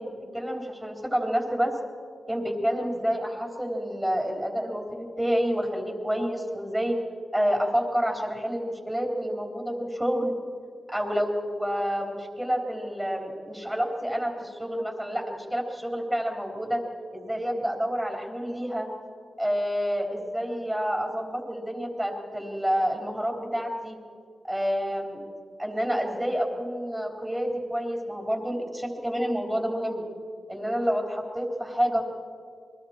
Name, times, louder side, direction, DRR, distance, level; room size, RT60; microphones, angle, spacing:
voice 1, 0.0-1.8 2.3-7.0 7.3-10.4 10.9-16.8 17.1-18.9 19.4-24.0 24.4-25.3 25.6-30.0 30.5-32.0, equal, ahead, 1 dB, 3.6 m, -28 dB
29.0 x 22.0 x 4.4 m, 2.2 s
wide cardioid pair, 95°, 0 cm